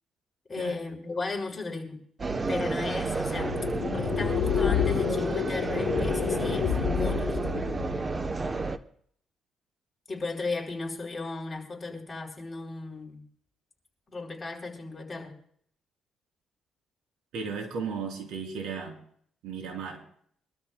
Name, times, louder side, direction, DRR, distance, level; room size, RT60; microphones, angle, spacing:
voice 1, 0.5-2.0 2.5-3.5 3.9-7.5 10.1-13.2 14.1-15.4, left 3 dB, 25° left, 0 dB, 3.2 m, -35 dB
sound 1, 2.2-8.8, right 3 dB, 30° right, 0.8 m, -31 dB
sound 2, 3.3-8.1, left 9 dB, 85° left, 0.8 m, -29 dB
voice 2, 17.3-19.0 19.4-20.0, right 5 dB, 85° right, 2 dB, 3.1 m, -35 dB
24.0 x 13.0 x 2.2 m, 0.63 s
cardioid pair, 90°, 0 cm